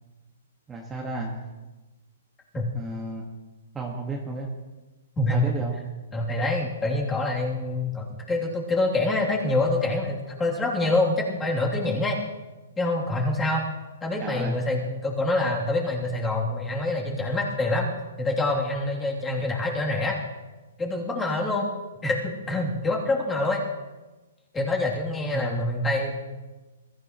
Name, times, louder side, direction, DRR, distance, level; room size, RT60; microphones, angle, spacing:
voice 1, 0.7-1.4 2.7-3.3 3.7-4.5 5.3-5.8 14.2-14.6 25.3-25.7, right 3 dB, 15° right, -2 dB, 1.7 m, -33 dB
voice 2, 5.2-5.6 6.1-12.2 12.8-13.6 14.0-20.2 20.8-21.7 22.0-23.6 24.5-26.2, left 2 dB, 10° left, -2 dB, 3.0 m, -26 dB
22.5 x 14.0 x 3.1 m, 1.2 s
hypercardioid pair, 145°, 0 cm